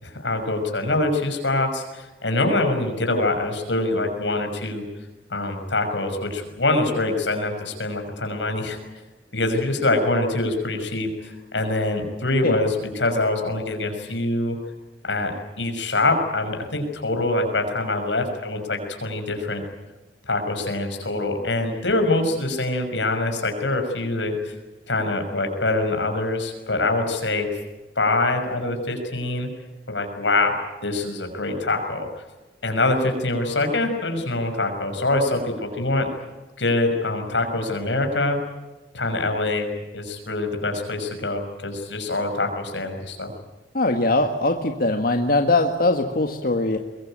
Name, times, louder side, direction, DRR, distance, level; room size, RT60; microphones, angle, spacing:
voice 1, 0.0-4.8 5.3-8.8 9.3-14.6 15.0-15.3 15.6-19.6 20.3-24.5 24.9-27.5 28.0-29.5 29.9-30.6 30.8-32.1 32.6-36.1 36.6-38.4 38.9-43.3, left 2 dB, 90° left, 5 dB, 6.1 m, -24 dB
voice 2, 43.7-46.8, left 2 dB, 55° left, 4 dB, 1.7 m, -21 dB
23.0 x 22.5 x 9.0 m, 1.2 s
head